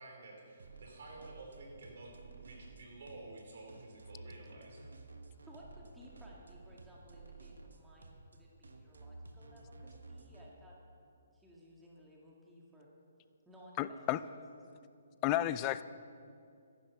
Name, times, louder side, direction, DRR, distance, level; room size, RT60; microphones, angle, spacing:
voice 1, 0.0-4.9 5.3-5.4 6.1-6.3, right 2 dB, 65° right, 0 dB, 3.9 m, -52 dB
sound 1, 0.6-10.5, right 3 dB, 85° right, 1.4 m, -53 dB
voice 2, 5.4-10.8 11.3-12.9 13.5-14.0, equal, 5° right, -5 dB, 1.9 m, -58 dB
voice 3, 13.8-14.2 15.2-15.8, left 14 dB, 25° left, 14 dB, 0.4 m, -32 dB
14.0 x 10.5 x 5.9 m, 2.4 s
hypercardioid pair, 145°, 0 cm